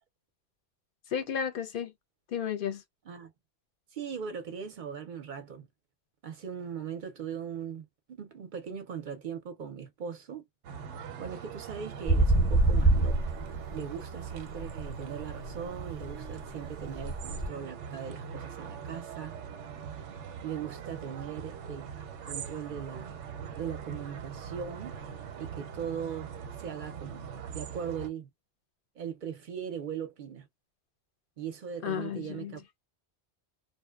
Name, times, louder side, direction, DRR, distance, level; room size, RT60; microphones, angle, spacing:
voice 1, 1.1-1.9 2.3-2.8 31.8-32.6, left 8 dB, 55° left, 0.7 m, -33 dB
voice 2, 3.9-5.7 6.2-10.4 11.2-13.3 13.7-19.3 20.4-21.9 22.3-23.2 23.6-25.0 25.4-26.3 26.6-28.3 29.0-30.5 31.4-32.6, right 7 dB, 55° right, 0.6 m, -39 dB
sound 1, 10.6-28.1, right 7 dB, 90° right, 0.9 m, -42 dB
sound 2, 12.1-13.9 14.2-17.5, right 2 dB, 15° left, 0.7 m, -27 dB
2.6 x 2.1 x 2.3 m
omnidirectional pair, 1.2 m